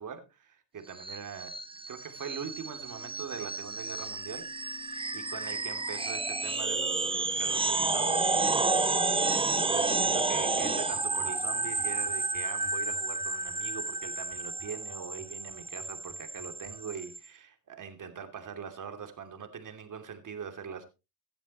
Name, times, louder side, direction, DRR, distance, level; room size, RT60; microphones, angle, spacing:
voice 1, 0.0-1.5 1.9-9.2 9.6-20.9, right 6 dB, 45° right, 7 dB, 2.8 m, -42 dB
sound 1, 1.0-17.2, right 3 dB, 10° right, 1.0 m, -31 dB
sound 2, 2.0-12.1, left 10 dB, 45° left, 7.7 m, -52 dB
sound 3, 8.3-16.8, equal, 10° left, 2.9 m, -55 dB
16.5 x 10.5 x 3.0 m, 0.27 s
hypercardioid pair, 70°, 45 cm